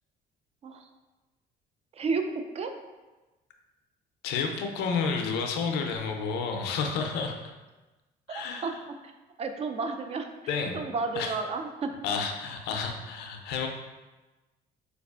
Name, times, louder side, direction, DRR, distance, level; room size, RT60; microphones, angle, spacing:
voice 1, 1.9-2.8 8.3-8.7 9.4-11.9, right 4 dB, 40° right, 6 dB, 0.3 m, -32 dB
voice 2, 4.2-7.4 8.3-8.8 10.5-10.8 11.1-11.4 12.0-13.7, left 5 dB, 90° left, 4 dB, 0.4 m, -30 dB
4.5 x 2.4 x 2.3 m, 1.1 s
cardioid pair, 110°, 17 cm